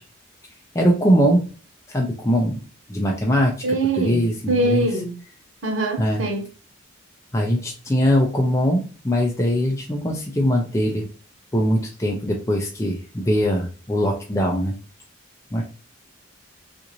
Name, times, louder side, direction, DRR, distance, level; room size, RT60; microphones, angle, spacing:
voice 1, 0.7-1.4 1.9-2.6 2.9-3.5 4.0-4.9 6.0-6.2 7.3-11.1 11.5-14.7 15.5-15.6, equal, 15° left, 0 dB, 0.5 m, -21 dB
voice 2, 3.6-5.1 5.6-6.5, right 2 dB, 70° right, 1 dB, 1.0 m, -23 dB
3.8 x 2.5 x 2.9 m, 0.37 s
head